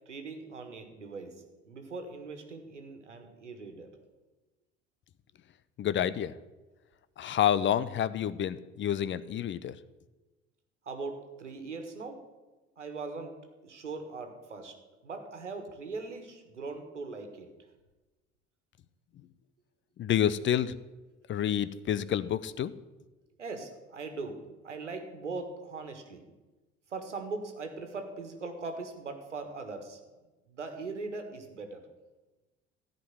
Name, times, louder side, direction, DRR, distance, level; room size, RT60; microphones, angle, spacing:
voice 1, 0.1-3.9 10.9-12.2 12.8-14.8 15.0-17.5 23.4-26.2 26.9-30.0 30.5-31.8, right 3 dB, 90° right, 6 dB, 1.6 m, -40 dB
voice 2, 5.8-6.3 7.2-9.8 20.0-20.7 21.3-22.7, left 10 dB, 35° left, 16 dB, 0.7 m, -28 dB
14.0 x 5.2 x 9.3 m, 1.2 s
figure-of-eight pair, 65°, 35 cm